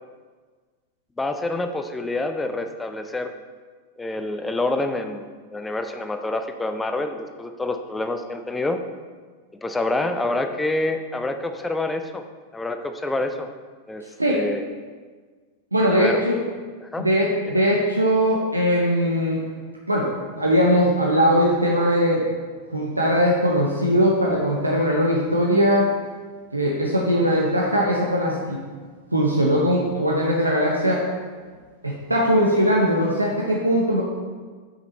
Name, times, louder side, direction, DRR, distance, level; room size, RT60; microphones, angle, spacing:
voice 1, 1.2-3.3 4.0-8.8 9.6-12.2 12.5-13.5 13.9-14.0 14.3-14.6 15.9-16.2 16.8-17.1 17.5-17.6, left 2 dB, 10° left, 7 dB, 0.5 m, -27 dB
voice 2, 15.7-16.4 17.0-19.4 19.9-22.2 22.7-25.9 26.5-28.6 29.1-31.0 31.8-34.0, equal, 85° right, -3 dB, 0.8 m, -20 dB
6.0 x 5.4 x 4.1 m, 1.5 s
figure-of-eight pair, 90°, 0 cm